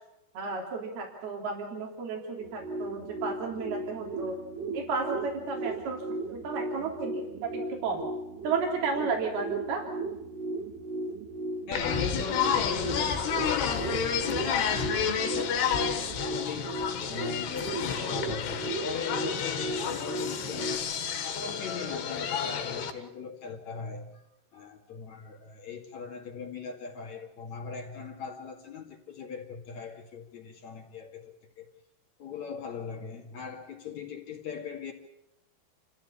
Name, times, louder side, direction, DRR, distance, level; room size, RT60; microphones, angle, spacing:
voice 1, 0.4-4.4 4.7-6.0 6.3-8.0 8.4-9.8, right 4 dB, 70° right, 1 dB, 5.3 m, -33 dB
sound 1, 2.4-20.8, right 2 dB, 90° right, 3.6 m, -36 dB
sound 2, 11.7-22.9, left 7 dB, 85° left, 3.9 m, -30 dB
voice 2, 11.7-16.8 17.1-20.9 21.2-24.2 24.5-31.7 32.2-34.9, left 6 dB, 50° left, 2 dB, 3.3 m, -39 dB
29.0 x 14.5 x 8.5 m, 0.90 s
omnidirectional pair, 4.6 m